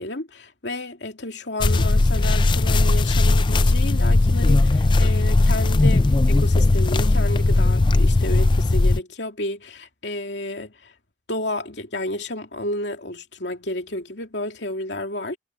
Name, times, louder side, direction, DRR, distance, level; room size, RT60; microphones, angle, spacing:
voice 1, 0.0-10.9 11.3-15.4, left 1 dB, 80° left, 2.6 m, -31 dB
sound 1, 1.6-9.0, left 2 dB, 25° left, 0.4 m, -18 dB
head